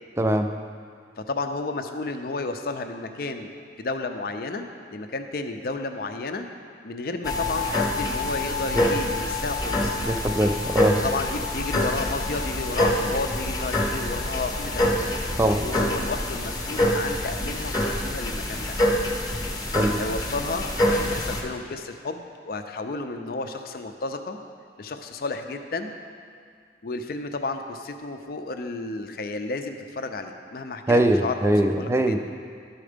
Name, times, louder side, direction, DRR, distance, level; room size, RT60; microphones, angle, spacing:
voice 1, 0.2-0.5 8.7-8.8 10.1-11.0 15.4-15.6 19.7-19.9 30.9-32.2, right 1 dB, 15° right, 6 dB, 0.4 m, -21 dB
voice 2, 1.2-3.5 3.8-4.6 4.9-6.5 6.8-10.0 11.0-14.9 15.6-18.8 20.0-24.4 24.8-26.0 26.8-31.4 31.8-32.2, left 3 dB, 55° left, 6 dB, 0.5 m, -32 dB
sound 1, 7.2-21.4, left 1 dB, 20° left, 0.8 m, -26 dB
12.0 x 4.4 x 5.0 m, 2.2 s
head